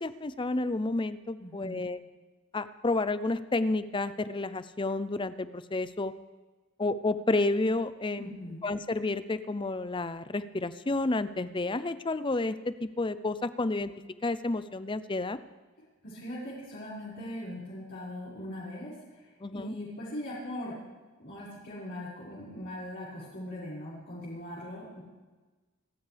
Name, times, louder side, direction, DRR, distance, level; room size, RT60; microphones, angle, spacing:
voice 1, 0.0-2.0 2.5-6.1 6.8-8.3 8.6-13.9 14.2-15.4 19.4-19.7, left 2 dB, 25° left, 13 dB, 0.5 m, -30 dB
voice 2, 1.4-1.8 8.2-8.6 16.0-20.7 21.2-25.0, left 1 dB, 55° left, -10 dB, 5.6 m, -40 dB
27.5 x 13.0 x 3.5 m, 1.3 s
head